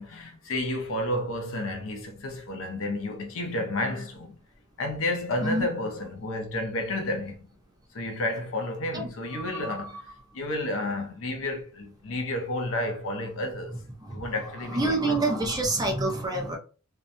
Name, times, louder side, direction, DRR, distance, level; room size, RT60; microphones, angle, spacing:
voice 1, 0.0-4.4 4.8-7.5 7.9-10.0 10.3-13.8 14.1-15.2, left 1 dB, 65° left, 0.6 m, -31 dB
voice 2, 8.9-10.0 14.0-14.3 14.6-16.6, right 2 dB, 20° right, 0.5 m, -28 dB
2.7 x 2.2 x 2.6 m
head